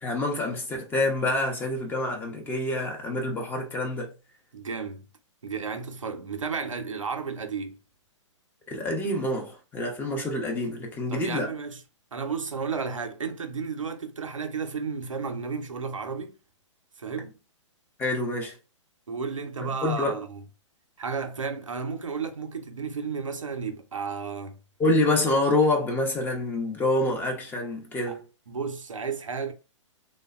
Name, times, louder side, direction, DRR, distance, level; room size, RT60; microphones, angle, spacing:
voice 1, 0.0-4.1 8.7-11.5 18.0-18.6 19.8-20.2 24.8-28.2, left 2 dB, 10° left, 0.6 m, -27 dB
voice 2, 4.5-5.1 5.4-7.8 11.1-11.8 12.1-16.3 17.0-17.4 19.1-20.4 21.0-24.6 28.1-28.2 28.5-29.5, right 5 dB, 90° right, 0.5 m, -33 dB
3.2 x 2.0 x 2.3 m
figure-of-eight pair, 120°, 16 cm